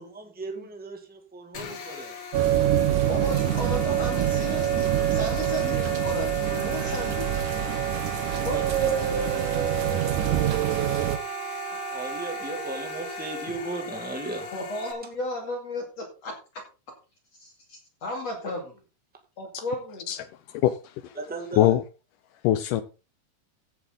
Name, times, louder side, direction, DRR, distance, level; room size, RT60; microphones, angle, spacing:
voice 1, 0.0-2.2 8.2-8.9 11.7-14.6 21.1-21.7, right 3 dB, 5° right, 0.9 m, -37 dB
sound 1, 1.5-14.9, left 6 dB, 65° left, 3.9 m, -38 dB
sound 2, 2.3-11.2, right 11 dB, 65° right, 2.1 m, -25 dB
voice 2, 3.1-7.4 8.4-9.2 14.5-16.4 17.4-18.8 19.4-20.0, left 2 dB, 45° left, 3.1 m, -34 dB
Wind instrument woodwind instrument, 6.4-14.1, right 15 dB, 90° right, 2.8 m, -37 dB
voice 3, 20.5-21.1 21.6-21.8 22.4-22.8, left 13 dB, 85° left, 1.9 m, -22 dB
16.0 x 7.3 x 3.9 m
omnidirectional pair, 4.5 m